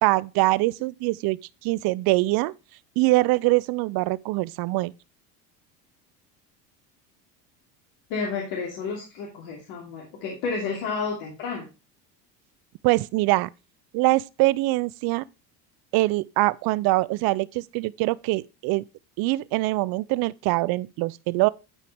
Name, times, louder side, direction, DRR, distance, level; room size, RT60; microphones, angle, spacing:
voice 1, 0.0-2.5 3.0-4.9 12.8-13.5 13.9-15.2 15.9-18.8 19.2-21.5, right 20 dB, 50° right, 0.5 m, -23 dB
voice 2, 8.1-11.7, left 5 dB, 65° left, 2.7 m, -31 dB
11.5 x 4.8 x 3.4 m
hypercardioid pair, 85°, 47 cm